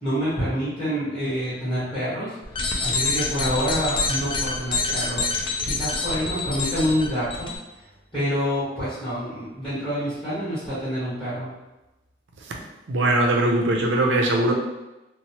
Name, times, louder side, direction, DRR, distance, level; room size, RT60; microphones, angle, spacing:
voice 1, 0.0-5.3 5.6-7.5 8.1-11.5, equal, ahead, -13 dB, 1.2 m, -27 dB
sound 1, 2.4-7.5, left 3 dB, 30° left, 0.4 m, -26 dB
voice 2, 12.9-14.5, right 1 dB, 90° right, 1 dB, 0.5 m, -20 dB
3.0 x 2.0 x 2.8 m, 1.0 s
head